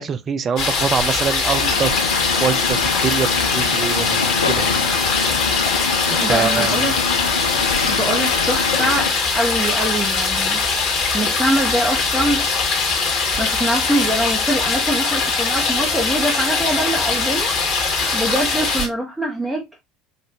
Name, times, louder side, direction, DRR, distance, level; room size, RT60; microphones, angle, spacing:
voice 1, 0.0-2.0 2.4-4.7 6.1-7.0 7.5-7.7, right 7 dB, 30° right, 0.4 m, -24 dB
sound 1, 0.6-18.9, left 4 dB, 50° left, 1.5 m, -21 dB
sound 2, 1.5-9.1, left 6 dB, 75° left, 0.3 m, -25 dB
voice 2, 6.2-6.9 7.8-10.6 11.1-12.4 13.4-19.6, right 1 dB, 10° right, 1.1 m, -23 dB
5.0 x 2.6 x 2.8 m
figure-of-eight pair, 65°, 0 cm